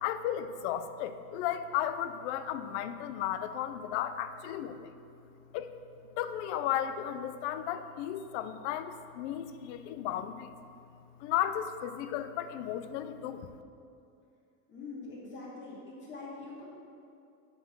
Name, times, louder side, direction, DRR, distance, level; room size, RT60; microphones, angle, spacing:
voice 1, 0.0-4.9 5.5-5.7 6.2-10.5 11.2-13.5, left 10 dB, 50° left, 10 dB, 0.5 m, -34 dB
voice 2, 14.7-16.6, left 3 dB, 25° left, -6 dB, 2.0 m, -44 dB
9.8 x 4.5 x 7.7 m, 2.5 s
supercardioid pair, 165°, 47 cm